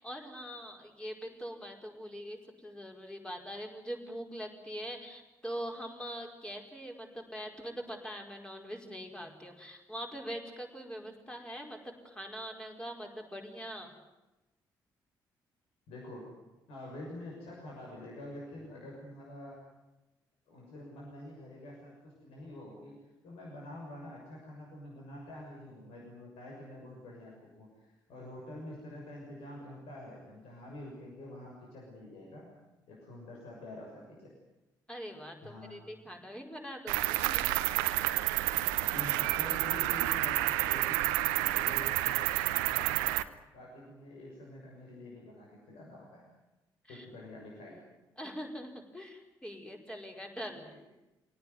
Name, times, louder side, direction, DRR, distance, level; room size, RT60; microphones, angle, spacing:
voice 1, 0.0-11.8 12.0-13.9 34.9-37.6 46.8-47.1 48.2-50.7, equal, 10° left, 2 dB, 5.2 m, -43 dB
voice 2, 15.9-16.3 16.7-19.6 20.5-22.9 23.2-27.7 28.1-32.5 32.9-34.3 35.4-35.8 38.8-43.2 43.5-46.2 46.9-47.8, left 1 dB, 60° left, -2 dB, 6.6 m, -47 dB
Cricket, 36.9-43.2, right 17 dB, 70° right, 0.8 m, -29 dB
25.0 x 18.0 x 9.6 m, 1.0 s
figure-of-eight pair, 40°, 11 cm